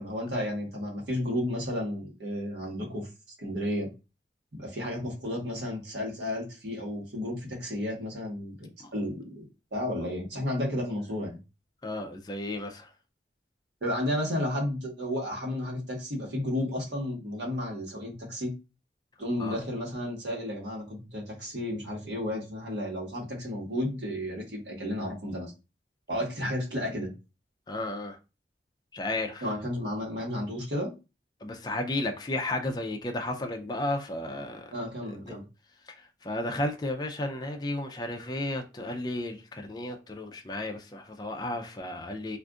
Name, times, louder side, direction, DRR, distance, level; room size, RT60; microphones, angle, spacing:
voice 1, 0.0-3.1 3.4-3.9 4.5-9.4 9.7-11.4 13.8-18.5 19.2-25.5 26.1-27.1 29.4-30.9 34.7-35.4, left 1 dB, 80° right, 1.2 m, -32 dB
voice 2, 11.8-12.9 19.4-19.6 27.7-28.2 28.9-29.4 31.4-34.7 35.1-35.4 36.2-42.4, left 1 dB, 25° left, 0.4 m, -33 dB
2.5 x 2.4 x 3.5 m
head